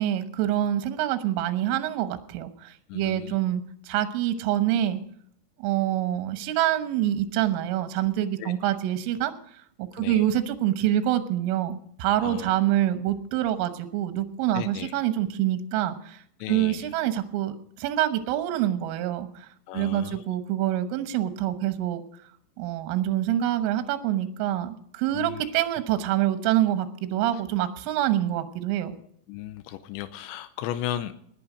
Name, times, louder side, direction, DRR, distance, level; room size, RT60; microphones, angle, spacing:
voice 1, 0.0-5.0 5.6-9.3 9.8-16.2 16.5-19.5 19.7-22.0 22.6-29.0, right 12 dB, 80° right, 10 dB, 3.5 m, -26 dB
voice 2, 2.9-3.4 8.4-8.5 10.0-10.3 12.2-12.5 14.5-14.9 16.4-16.9 19.7-20.2 25.1-25.5 29.3-31.3, left 12 dB, 90° left, 11 dB, 2.5 m, -35 dB
19.5 x 8.5 x 5.0 m, 0.65 s
omnidirectional pair, 6.0 m